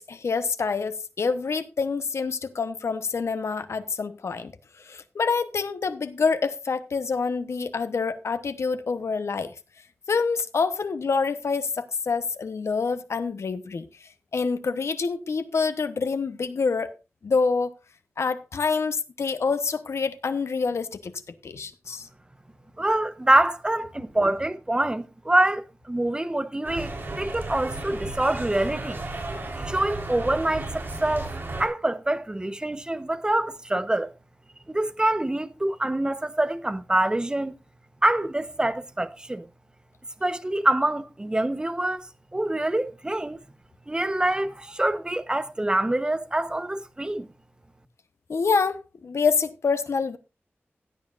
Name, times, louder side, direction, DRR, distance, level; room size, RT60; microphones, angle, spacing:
voice 1, 0.0-9.5 10.1-13.9 14.3-16.9 17.2-17.7 18.2-21.1 21.4-22.1 48.3-50.2, left 4 dB, 90° left, 1.0 m, -26 dB
voice 2, 22.8-29.0 29.6-31.3 31.6-34.1 34.7-37.5 38.0-39.5 40.2-42.1 42.3-43.4 43.9-47.3, right 1 dB, 20° right, 0.9 m, -25 dB
sound 1, 26.6-31.7, right 2 dB, 55° right, 3.9 m, -34 dB
16.0 x 9.6 x 2.5 m
wide cardioid pair, 105°, 5 cm